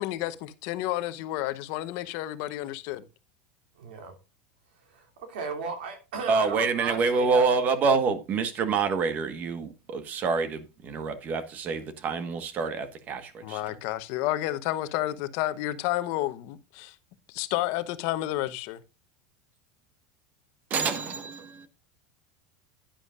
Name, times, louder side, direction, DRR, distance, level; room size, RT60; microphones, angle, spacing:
voice 1, 0.0-3.1 13.4-16.9 17.3-18.8, left 15 dB, 55° left, 0.9 m, -30 dB
voice 2, 3.8-4.2 4.7-7.6, right 5 dB, 90° right, 2.7 m, -36 dB
voice 3, 6.3-13.6 20.7-21.6, right 4 dB, 30° right, 1.4 m, -27 dB
10.5 x 10.0 x 2.5 m
supercardioid pair, 155°, 5 cm